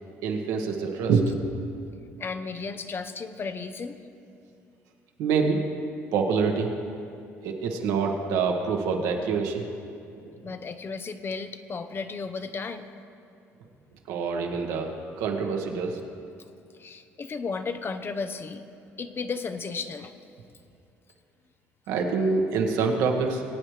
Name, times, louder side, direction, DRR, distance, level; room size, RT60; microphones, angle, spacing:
voice 1, 0.2-1.3 5.2-5.6 6.1-6.7 7.4-9.7 10.2-10.5 14.1-16.0 21.9-23.4, right 5 dB, 75° right, 2 dB, 1.4 m, -26 dB
voice 2, 2.2-4.0 10.4-12.9 16.8-18.7 19.0-20.1, left 4 dB, 35° left, 10 dB, 0.7 m, -34 dB
21.5 x 8.7 x 3.3 m, 2.6 s
hypercardioid pair, 70°, 6 cm